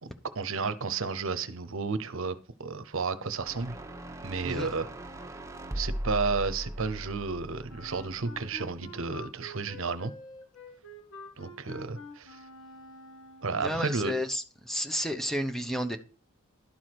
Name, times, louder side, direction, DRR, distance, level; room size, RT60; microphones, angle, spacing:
voice 1, 0.0-3.8 4.2-4.9 5.7-10.1 11.4-12.4 13.4-14.1, right 4 dB, 65° right, 11 dB, 0.9 m, -32 dB
sound 1, 3.4-8.6, right 1 dB, 15° right, 1.1 m, -39 dB
Wind instrument woodwind instrument, 7.7-13.7, left 1 dB, 65° left, 2.1 m, -47 dB
voice 2, 13.6-14.4 14.7-16.0, equal, ahead, 7 dB, 0.8 m, -31 dB
11.5 x 4.8 x 6.0 m, 0.37 s
head